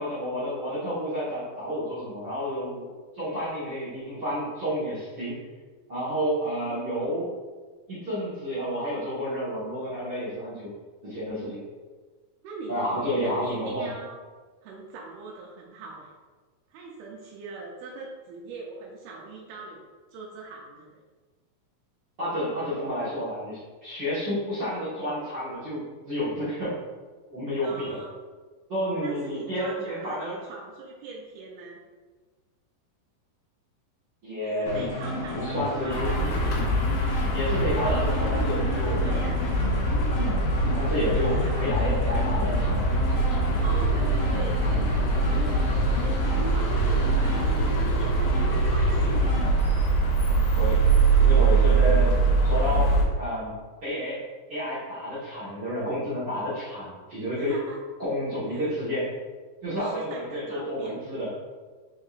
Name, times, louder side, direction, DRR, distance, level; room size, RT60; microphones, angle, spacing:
voice 1, 0.0-2.9 3.1-5.4 5.9-7.3 7.9-10.7 11.0-11.6 12.7-13.9 22.2-26.8 27.3-28.0 28.7-30.4 34.2-34.8 35.3-36.1 37.3-39.0 40.1-40.3 40.7-42.9 50.5-50.8 51.2-52.1 52.4-54.2 54.5-57.6 58.0-59.1 59.6-61.3, equal, 60° right, -11 dB, 1.1 m, -30 dB
voice 2, 6.5-7.1 12.4-14.2 14.6-16.1 16.7-19.9 20.1-21.0 27.6-28.1 29.0-31.8 34.4-36.3 37.8-39.5 41.3-41.8 43.6-49.2 51.7-52.0 57.4-57.8 58.5-58.7 59.8-61.0, right 3 dB, 85° right, -2 dB, 2.5 m, -41 dB
sound 1, 34.7-49.5, left 1 dB, 65° left, 1.5 m, -32 dB
sound 2, 35.9-53.0, right 3 dB, 85° left, 1.6 m, -23 dB
5.3 x 3.7 x 2.4 m, 1.4 s
omnidirectional pair, 4.3 m